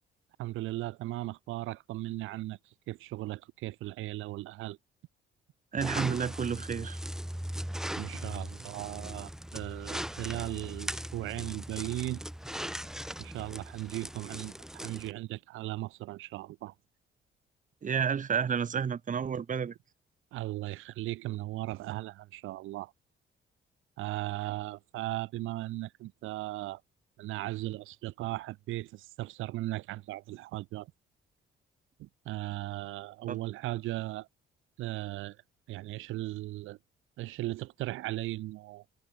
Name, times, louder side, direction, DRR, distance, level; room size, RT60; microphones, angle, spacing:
voice 1, 0.4-2.6 2.9-4.8 8.0-12.2 13.2-16.7 20.3-22.9 24.0-26.8 27.2-30.9 32.0-34.3 34.8-35.4 35.7-36.8 37.2-38.8, right 17 dB, 90° right, 0.9 m, -37 dB
voice 2, 5.7-7.0 17.8-19.7 33.3-33.4, right 7 dB, 40° right, 1.4 m, -30 dB
sound 1, 5.8-15.1, equal, 5° right, 2.3 m, -39 dB
cardioid pair, 90°, 20 cm